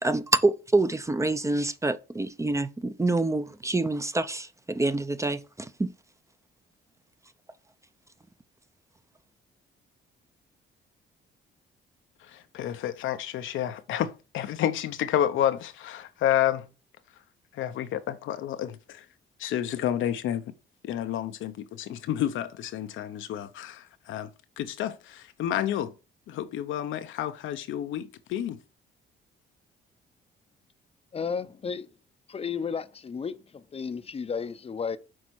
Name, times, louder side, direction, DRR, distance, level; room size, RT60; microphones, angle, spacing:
voice 1, 0.0-5.9, right 2 dB, 15° right, 0.6 m, -26 dB
voice 2, 12.2-16.7 17.5-19.0 19.4-20.4 20.8-24.3 24.6-25.9 26.3-28.6, left 11 dB, 80° left, 0.7 m, -30 dB
voice 3, 31.1-31.9 32.3-35.0, left 6 dB, 30° left, 0.6 m, -33 dB
6.2 x 4.2 x 4.6 m
cardioid pair, 90°, 20 cm